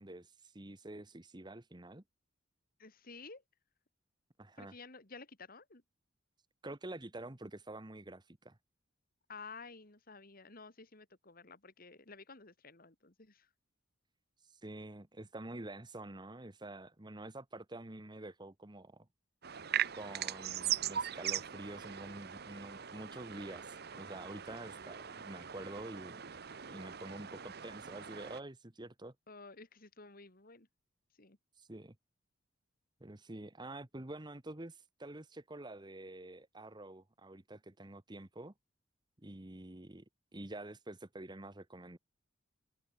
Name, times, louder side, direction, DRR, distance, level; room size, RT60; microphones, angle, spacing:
voice 1, 0.0-2.0 4.4-4.7 6.6-8.6 14.6-19.0 19.9-26.2 26.7-29.1 31.6-31.9 33.0-38.5 39.2-40.0 40.3-42.0, right 2 dB, 20° right, 1.2 m, -47 dB
voice 2, 2.8-3.4 4.6-5.8 9.3-13.5 29.3-30.7 31.2-31.4, left 4 dB, 45° left, 2.6 m, -52 dB
sound 1, 19.4-28.4, right 10 dB, 50° right, 1.0 m, -40 dB
head